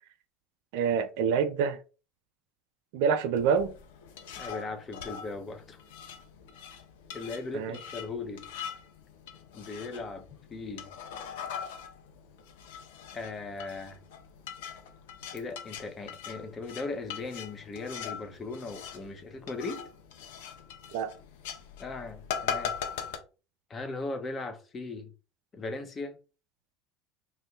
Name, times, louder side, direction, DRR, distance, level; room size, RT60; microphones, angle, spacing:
voice 1, 0.7-1.8 2.9-3.7 7.5-7.8 20.9-21.1, right 6 dB, 60° right, 0.3 m, -26 dB
sound 1, 3.4-23.2, left 7 dB, 65° left, 0.5 m, -41 dB
voice 2, 4.4-5.8 7.1-8.5 9.5-10.9 13.1-14.0 15.3-19.9 21.8-22.7 23.7-25.1 25.5-26.2, left 3 dB, 30° left, 0.7 m, -38 dB
2.6 x 2.1 x 3.8 m
figure-of-eight pair, 70°, 0 cm